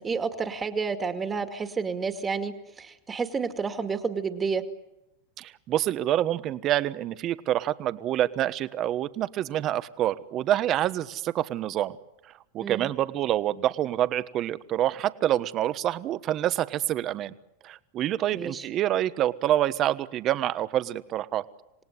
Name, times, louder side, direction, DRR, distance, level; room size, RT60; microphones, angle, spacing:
voice 1, 0.0-4.6 12.6-12.9 18.3-18.7, right 5 dB, 20° right, 7 dB, 2.2 m, -30 dB
voice 2, 5.4-12.0 12.5-17.3 17.6-21.4, right 12 dB, 40° right, 14 dB, 1.2 m, -27 dB
27.5 x 18.0 x 9.9 m, 0.90 s
supercardioid pair, 130°, 0 cm